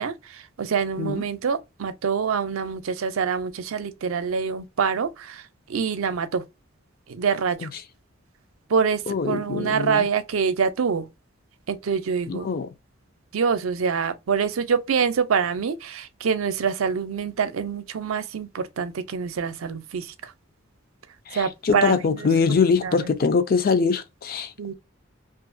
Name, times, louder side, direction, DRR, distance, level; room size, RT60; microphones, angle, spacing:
voice 1, 0.0-6.4 7.1-7.7 8.7-11.1 11.7-12.5 13.3-20.3 21.3-23.1 24.6-24.7, right 6 dB, 85° right, 0.5 m, -26 dB
voice 2, 9.1-10.0 12.3-12.7 21.3-24.5, left 5 dB, 45° left, 0.4 m, -23 dB
2.8 x 2.4 x 2.4 m
head